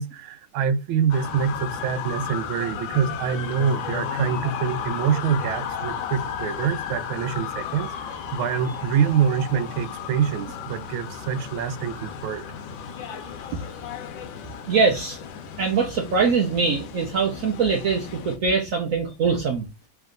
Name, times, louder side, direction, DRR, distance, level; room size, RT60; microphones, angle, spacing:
voice 1, 0.0-12.4 13.5-13.6, right 7 dB, 85° right, 1.4 m, -25 dB
sound 1, 1.1-18.4, left 7 dB, 75° left, 1.4 m, -34 dB
voice 2, 14.7-15.2 15.6-19.7, right 5 dB, 65° right, 0.8 m, -22 dB
3.6 x 3.0 x 3.7 m
omnidirectional pair, 2.2 m